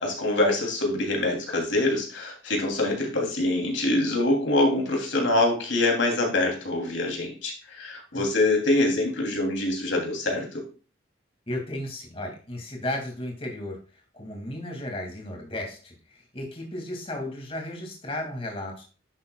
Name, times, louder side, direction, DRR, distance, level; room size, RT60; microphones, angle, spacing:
voice 1, 0.0-10.6, left 2 dB, 80° left, 1 dB, 3.0 m, -25 dB
voice 2, 11.5-13.8 14.1-18.8, left 1 dB, 30° left, 2 dB, 2.2 m, -34 dB
10.5 x 7.4 x 2.3 m, 0.35 s
head